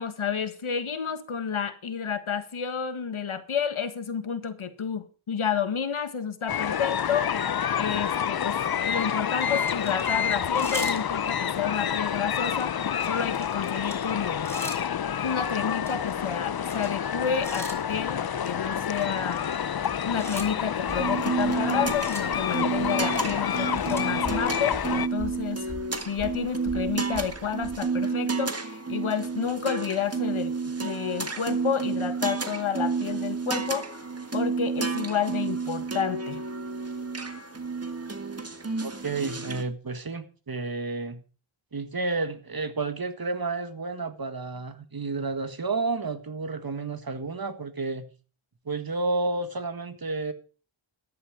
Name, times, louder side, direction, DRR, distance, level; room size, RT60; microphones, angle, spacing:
voice 1, 0.0-7.3 7.8-14.6 15.2-19.4 20.0-25.7 26.0-36.4, left 7 dB, 80° left, 10 dB, 1.7 m, -30 dB
sound 1, 6.5-25.1, left 8 dB, 50° left, 0.6 m, -28 dB
sound 2, 9.6-11.5 11.9-12.1 12.5-15.0 15.6-17.1 17.4-27.9, equal, 5° left, 4.1 m, -42 dB
Dark Stringz, 20.9-39.6, right 4 dB, 30° right, 1.8 m, -31 dB
voice 2, 38.8-41.2 41.7-48.1 48.7-50.3, right 3 dB, 45° right, 9 dB, 1.7 m, -31 dB
13.5 x 10.5 x 5.1 m, 0.37 s
wide cardioid pair, 85°, 48 cm